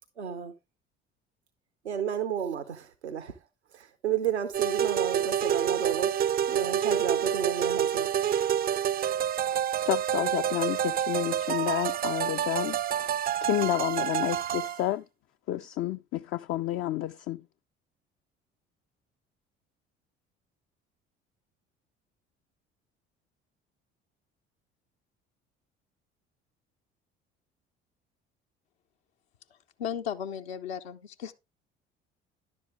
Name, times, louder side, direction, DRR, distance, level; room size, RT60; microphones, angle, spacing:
voice 1, 0.2-0.5 1.8-3.4 3.7-8.1, right 8 dB, 85° right, 0.8 m, -32 dB
sound 1, 4.5-14.8, right 10 dB, 30° right, 0.4 m, -28 dB
voice 2, 9.9-15.0 15.5-17.4, left 13 dB, 40° left, 0.4 m, -30 dB
voice 3, 29.8-31.3, left 8 dB, 75° left, 0.9 m, -35 dB
10.5 x 7.3 x 3.5 m
figure-of-eight pair, 55°, 32 cm